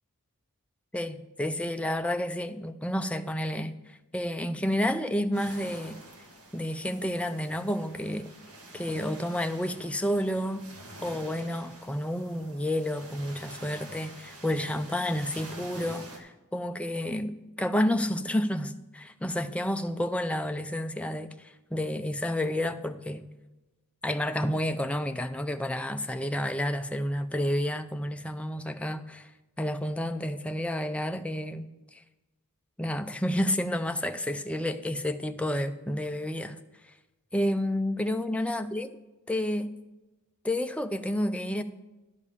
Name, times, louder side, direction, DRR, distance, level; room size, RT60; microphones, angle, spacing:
voice 1, 0.9-6.0 6.5-8.3 8.7-10.6 11.0-23.3 24.0-29.3 29.6-31.7 32.8-36.6 37.3-38.9 39.3-39.7 40.4-41.6, left 1 dB, 5° left, 0.4 m, -30 dB
sound 1, 5.3-16.2, right 1 dB, 70° right, 1.8 m, -47 dB
11.0 x 5.3 x 6.7 m
head